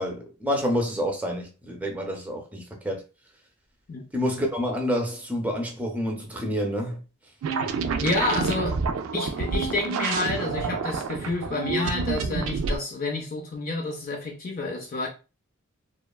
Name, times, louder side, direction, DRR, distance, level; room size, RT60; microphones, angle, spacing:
voice 1, 0.0-3.0 4.1-7.0, equal, 10° right, 0.5 m, -28 dB
sound 1, 7.4-12.8, right 5 dB, 85° right, 0.3 m, -28 dB
voice 2, 8.0-8.8 9.1-15.1, left 2 dB, 45° left, 0.4 m, -29 dB
3.0 x 2.2 x 2.2 m
head